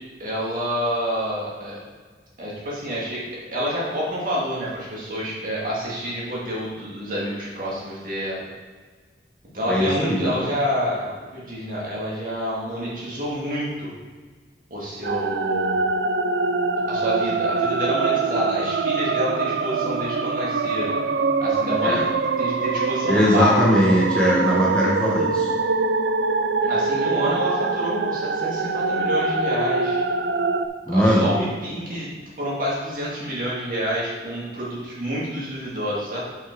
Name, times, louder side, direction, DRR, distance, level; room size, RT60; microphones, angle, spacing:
voice 1, 0.0-1.8 2.4-3.2 3.5-8.5 9.5-13.9 14.7-15.8 16.9-20.9 21.4-22.0 22.4-23.6 26.6-30.0 30.9-36.2, equal, 45° right, -6 dB, 2.2 m, -28 dB
voice 2, 9.7-10.4 21.8-22.0 23.1-25.5 30.9-31.3, equal, 5° left, -5 dB, 0.9 m, -20 dB
sound 1, 15.0-30.7, right 4 dB, 70° right, 0.4 m, -24 dB
6.0 x 5.9 x 4.7 m, 1.4 s
head